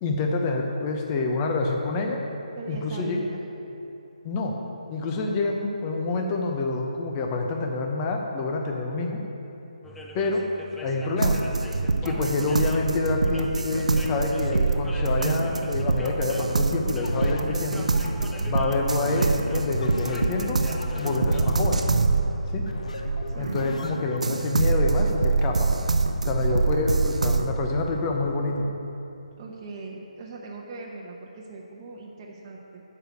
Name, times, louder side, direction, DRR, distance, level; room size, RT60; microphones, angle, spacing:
voice 1, 0.0-2.2 2.7-3.2 4.2-4.6 4.9-9.2 10.1-10.5 10.8-11.4 12.0-17.9 18.4-20.6 21.0-21.9 22.5-22.6 23.4-25.7 26.3-28.7, left 3 dB, 20° left, 2 dB, 0.9 m, -27 dB
voice 2, 2.6-3.4 12.1-12.3 22.7-22.8 23.3-23.5 26.5-26.6 29.4-32.8, right 3 dB, 30° right, -2 dB, 1.0 m, -40 dB
sound 1, 9.8-28.3, equal, 5° left, 0.4 m, -44 dB
sound 2, 11.2-23.8 24.2-27.5, right 3 dB, 75° right, 0.6 m, -25 dB
sound 3, 17.0-24.5, left 2 dB, 70° left, 0.8 m, -38 dB
9.9 x 4.9 x 6.7 m, 2.9 s
figure-of-eight pair, 150°, 4 cm